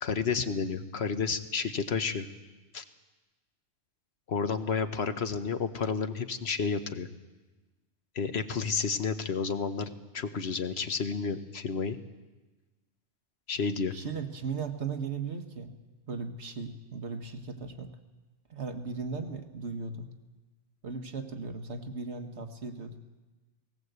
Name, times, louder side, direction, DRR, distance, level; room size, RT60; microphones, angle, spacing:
voice 1, 0.0-2.3 2.7-2.8 4.3-7.1 8.1-12.0 13.5-13.9, left 5 dB, 60° left, 9 dB, 1.3 m, -31 dB
voice 2, 13.9-15.8 16.1-17.9 18.5-20.1 20.8-23.0, right 5 dB, 65° right, 6 dB, 1.6 m, -37 dB
18.5 x 18.0 x 8.1 m, 1.2 s
omnidirectional pair, 1.2 m